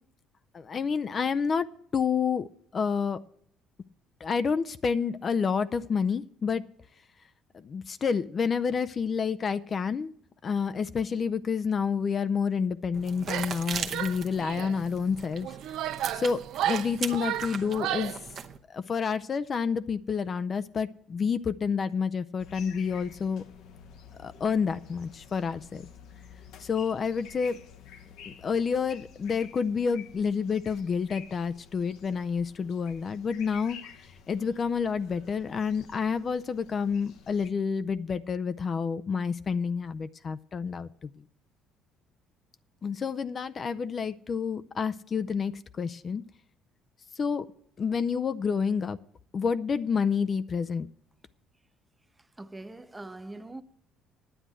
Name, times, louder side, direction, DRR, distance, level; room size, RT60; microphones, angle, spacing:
voice 1, 0.5-1.7 1.9-3.2 4.2-6.6 7.5-10.1 10.4-15.5 16.1-18.1 18.7-23.4 24.2-25.9 26.6-27.6 28.3-33.8 34.3-41.1 42.8-46.2 47.2-47.4 47.8-49.0 49.3-50.9, left 6 dB, 40° left, 0.4 m, -29 dB
sound 1, 12.9-18.6, right 6 dB, 50° right, 0.9 m, -39 dB
Female speech woman speaking / Yell, 13.2-13.6 13.9-14.8 15.4-18.2, right 12 dB, 75° right, 0.4 m, -33 dB
sound 2, 22.4-37.5, left 7 dB, 75° left, 0.9 m, -50 dB
voice 2, 52.4-53.6, right 2 dB, 15° right, 0.7 m, -42 dB
10.0 x 8.1 x 7.5 m
supercardioid pair, 75°, 0 cm